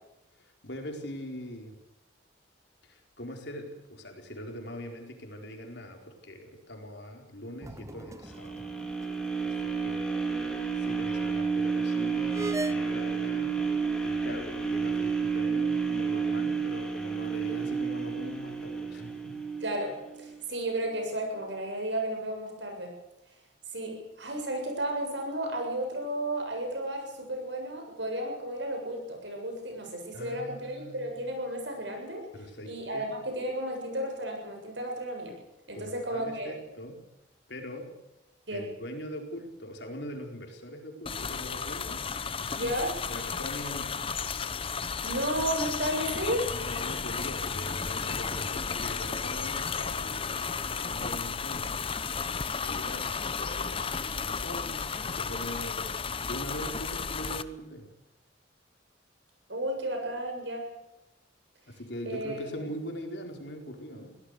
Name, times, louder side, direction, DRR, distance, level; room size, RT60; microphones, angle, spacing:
voice 1, 0.4-1.8 2.8-8.6 9.4-19.4 30.1-31.3 32.3-33.1 35.7-37.0 37.5-37.9 38.5-42.1 42.4-42.7 43.1-44.0 46.5-51.9 52.6-57.9 61.7-64.2, equal, 65° left, 3 dB, 4.5 m, -42 dB
sound 1, 7.6-9.3 9.6-9.7 12.3-12.8, right 1 dB, 15° right, 0.7 m, -38 dB
sound 2, 8.3-20.4 20.9-21.0, right 5 dB, 5° left, 3.1 m, -31 dB
voice 2, 19.6-22.9 23.7-32.3 32.7-35.4 35.7-36.5 38.5-38.6 42.6-42.9 45.0-46.4 52.6-53.1 59.5-60.7 62.1-62.4, right 1 dB, 70° right, 3 dB, 7.6 m, -33 dB
sound 3, 41.1-57.4, left 5 dB, 30° left, 0.8 m, -33 dB
24.0 x 17.5 x 6.8 m, 0.95 s
head